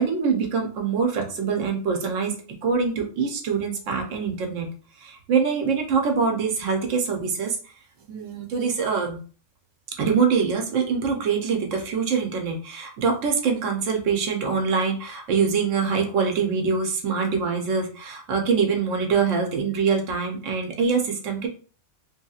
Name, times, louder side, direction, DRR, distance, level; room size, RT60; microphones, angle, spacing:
voice 1, 0.0-2.3 2.6-4.7 5.0-7.6 8.1-9.2 10.0-21.5, right 5 dB, 85° right, 3 dB, 1.0 m, -24 dB
3.0 x 2.8 x 2.3 m, 0.40 s
omnidirectional pair, 1.3 m